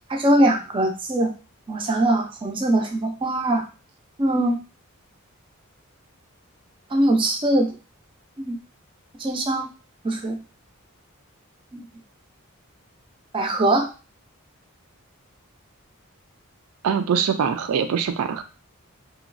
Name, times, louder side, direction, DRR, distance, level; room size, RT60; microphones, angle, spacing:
voice 1, 0.1-1.3 1.7-3.6 4.2-4.6 6.9-7.7 8.4-8.6 9.2-9.7 10.0-10.4 11.7-11.8 13.3-13.9, right 1 dB, 25° right, 3 dB, 0.4 m, -21 dB
voice 2, 16.8-18.4, right 7 dB, 90° right, 8 dB, 0.4 m, -23 dB
2.9 x 2.2 x 2.5 m, 0.32 s
head